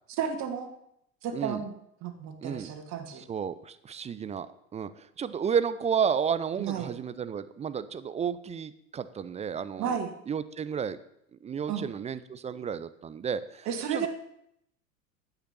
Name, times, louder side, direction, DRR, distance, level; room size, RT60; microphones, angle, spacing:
voice 1, 0.2-0.7 1.2-1.7 2.0-3.2 6.6-6.9 9.8-10.1 11.7-11.8 13.7-14.1, right 7 dB, 40° right, 5 dB, 2.3 m, -32 dB
voice 2, 2.4-2.7 3.1-4.5 4.7-10.0 10.3-11.0 11.3-14.1, right 7 dB, 15° right, 14 dB, 0.5 m, -32 dB
10.0 x 8.3 x 7.0 m, 0.76 s
figure-of-eight pair, 75°, 42 cm